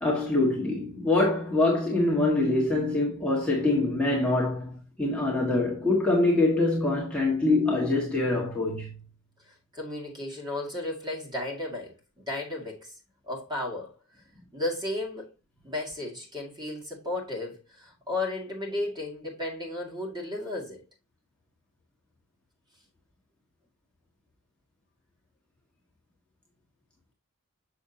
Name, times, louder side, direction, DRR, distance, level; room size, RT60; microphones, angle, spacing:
voice 1, 0.0-8.9, left 2 dB, 5° left, 1.6 m, -24 dB
voice 2, 9.7-12.9 13.3-13.9 14.5-15.3 15.6-20.8, left 2 dB, 20° right, 2.2 m, -34 dB
6.4 x 6.3 x 2.8 m
head